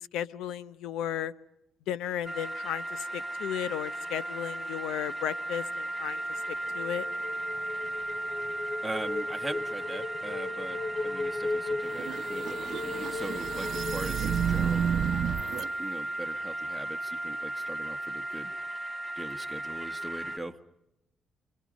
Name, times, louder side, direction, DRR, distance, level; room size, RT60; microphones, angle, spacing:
voice 1, 0.0-1.3 1.9-6.2 6.7-7.1, left 10 dB, 90° left, 16 dB, 0.7 m, -34 dB
sound 1, 2.2-20.4, right 1 dB, 10° left, 1.5 m, -36 dB
sound 2, 6.1-15.0, left 3 dB, 50° left, 0.8 m, -37 dB
voice 2, 8.8-14.9 15.8-18.5 19.2-20.6, right 1 dB, 5° right, 4 dB, 1.6 m, -40 dB
sound 3, 11.9-15.7, right 8 dB, 70° right, 0.8 m, -31 dB
29.5 x 23.0 x 5.2 m, 0.85 s
cardioid pair, 90°, 0 cm